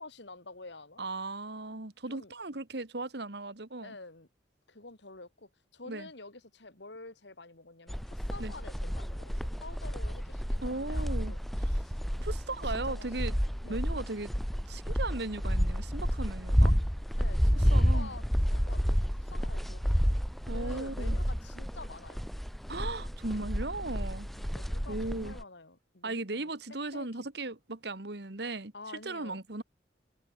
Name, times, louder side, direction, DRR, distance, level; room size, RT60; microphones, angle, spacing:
voice 1, 0.0-1.0 2.1-2.3 3.8-4.3 4.7-12.0 12.6-13.8 17.2-20.2 20.5-22.2 24.3-26.5 26.9-27.3 28.7-29.4, left 3 dB, 65° left, 2.7 m, -49 dB
voice 2, 1.0-4.0 5.9-6.1 8.4-8.5 10.6-11.4 12.2-13.3 13.6-14.3 14.7-16.7 17.7-18.1 20.5-21.2 22.7-24.3 24.9-25.4 26.0-28.7 29.0-29.6, right 2 dB, 60° right, 1.7 m, -37 dB
sound 1, 7.9-25.4, equal, ahead, 0.7 m, -30 dB
head